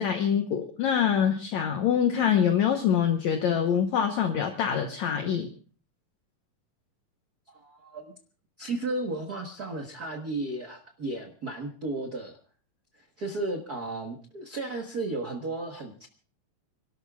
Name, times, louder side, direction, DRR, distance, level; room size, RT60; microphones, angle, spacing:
voice 1, 0.0-5.5, left 8 dB, 65° left, 5 dB, 2.1 m, -25 dB
voice 2, 7.5-8.0 8.6-12.4 13.0-16.1, right 2 dB, 80° right, 4 dB, 0.8 m, -34 dB
29.5 x 12.5 x 2.4 m, 0.40 s
omnidirectional pair, 4.1 m